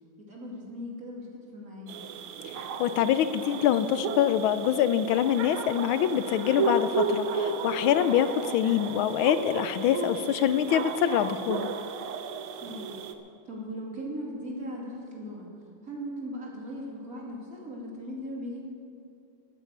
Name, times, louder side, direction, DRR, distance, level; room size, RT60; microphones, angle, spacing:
voice 1, 0.2-2.0 12.6-13.0 13.5-15.5 15.8-18.6, equal, 45° right, -4 dB, 3.1 m, -38 dB
sound 1, 1.9-13.1, right 4 dB, 90° right, 1.7 m, -33 dB
voice 2, 2.5-11.7, left 10 dB, 80° left, 12 dB, 1.5 m, -25 dB
11.5 x 11.0 x 8.2 m, 2.5 s
omnidirectional pair, 2.2 m